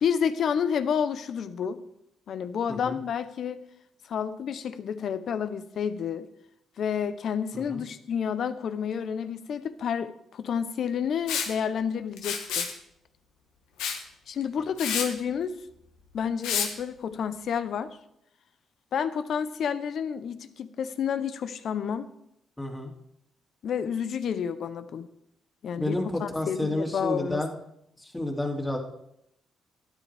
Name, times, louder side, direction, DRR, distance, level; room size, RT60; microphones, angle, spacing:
voice 1, 0.0-1.8 2.3-3.6 4.1-6.3 6.8-12.7 14.3-15.6 16.1-17.9 18.9-22.1 23.6-25.1 25.6-27.4, left 7 dB, 65° left, 12 dB, 0.7 m, -30 dB
Liquid, 11.3-11.5 12.2-12.7 13.8-14.0 14.4-14.5 14.8-15.1 16.4-16.7, left 7 dB, 90° left, 1.3 m, -29 dB
voice 2, 22.6-22.9 25.8-27.5 28.0-28.8, left 1 dB, 15° left, -1 dB, 2.4 m, -30 dB
12.5 x 10.0 x 3.4 m, 0.78 s
supercardioid pair, 65°, 0 cm